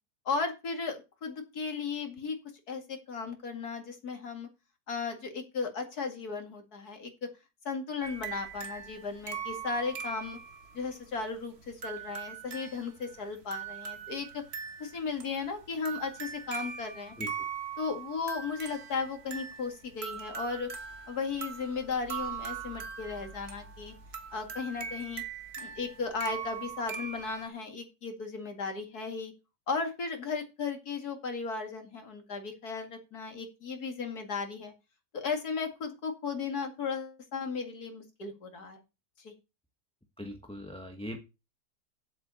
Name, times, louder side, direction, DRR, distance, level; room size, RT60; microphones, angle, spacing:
voice 1, 0.3-2.4 2.7-4.5 4.9-7.3 7.6-10.4 10.7-14.4 14.8-17.1 17.8-20.7 21.1-23.9 24.3-25.2 25.6-29.3 29.7-34.7 35.1-38.8 39.2-39.3, left 4 dB, 70° left, 2.7 m, -35 dB
sound 1, 8.0-27.5, right 7 dB, 40° right, 1.5 m, -41 dB
voice 2, 40.2-41.2, left 1 dB, 5° left, 1.2 m, -40 dB
8.0 x 7.8 x 7.0 m
omnidirectional pair, 1.7 m